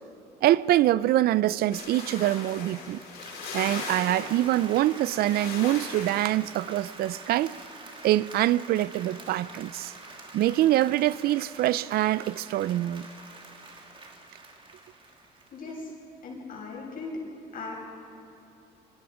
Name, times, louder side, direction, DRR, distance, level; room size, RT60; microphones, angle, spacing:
voice 1, 0.4-3.0 3.5-7.6 8.0-9.9 10.3-13.1, right 14 dB, 65° right, 0.4 m, -24 dB
sound 1, 1.7-6.4, left 4 dB, 85° left, 6.5 m, -39 dB
Applause, 2.8-15.9, right 3 dB, 30° right, 2.7 m, -46 dB
voice 2, 15.5-15.9 16.2-17.2 17.5-17.7, left 3 dB, 55° left, 6.4 m, -38 dB
26.5 x 24.5 x 5.1 m
cardioid pair, 110°, 17 cm